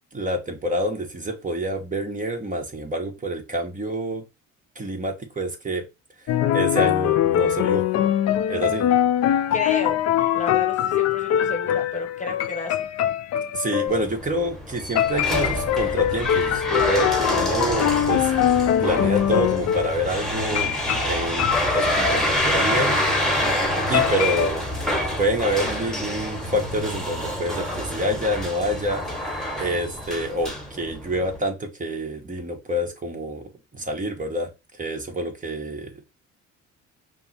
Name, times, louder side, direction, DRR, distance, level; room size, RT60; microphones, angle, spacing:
voice 1, 0.1-4.2 4.7-5.9 6.5-7.9 8.5-8.9 13.5-18.3 18.8-23.4 23.8-24.6 25.2-33.4 33.7-34.5 34.8-36.0, right 1 dB, 25° right, 1.2 m, -27 dB
sound 1, 6.3-14.1 15.0-20.0 20.5-22.3 23.9-24.5, left 11 dB, 55° left, 0.5 m, -22 dB
voice 2, 9.5-10.0 10.3-12.9, left 4 dB, 25° left, 1.0 m, -31 dB
sound 2, 13.9-31.4, equal, ahead, 1.3 m, -27 dB
5.2 x 2.1 x 4.2 m
cardioid pair, 90°, 32 cm